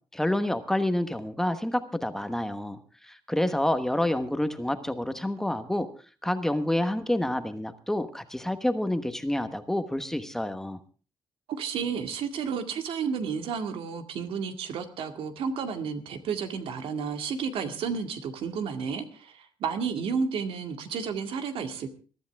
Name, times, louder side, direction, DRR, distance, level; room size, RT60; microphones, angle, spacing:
voice 1, 0.1-5.9 6.2-10.8, left 1 dB, 5° left, 9 dB, 1.1 m, -28 dB
voice 2, 11.5-22.0, right 6 dB, 85° right, 7 dB, 2.0 m, -32 dB
22.5 x 13.0 x 3.5 m, 0.37 s
cardioid pair, 165°, 9 cm